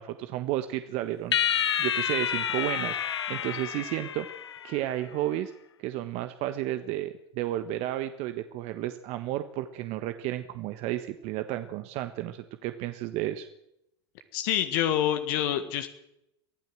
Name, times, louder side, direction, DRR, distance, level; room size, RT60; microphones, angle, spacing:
voice 1, 0.0-4.3 4.6-5.5 5.8-13.5, right 14 dB, 50° right, 9 dB, 1.4 m, -32 dB
sound 1, 1.3-4.9, left 9 dB, 85° left, 1.0 m, -29 dB
voice 2, 14.3-15.9, left 11 dB, 60° left, 7 dB, 1.8 m, -26 dB
24.0 x 15.5 x 7.7 m, 0.83 s
hypercardioid pair, 85°, 14 cm